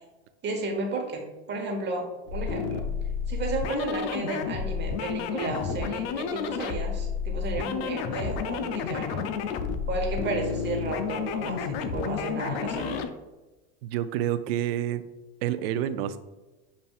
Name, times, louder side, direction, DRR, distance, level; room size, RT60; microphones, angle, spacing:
voice 1, 0.4-2.9 3.3-9.3 9.9-13.0, right 3 dB, 35° right, 2 dB, 1.0 m, -33 dB
sound 1, 2.3-13.1, left 6 dB, 65° left, 0.5 m, -31 dB
voice 2, 13.8-15.0 15.4-16.2, right 11 dB, 70° right, 12 dB, 0.4 m, -28 dB
6.9 x 2.6 x 2.4 m, 1.1 s
supercardioid pair, 110°, 32 cm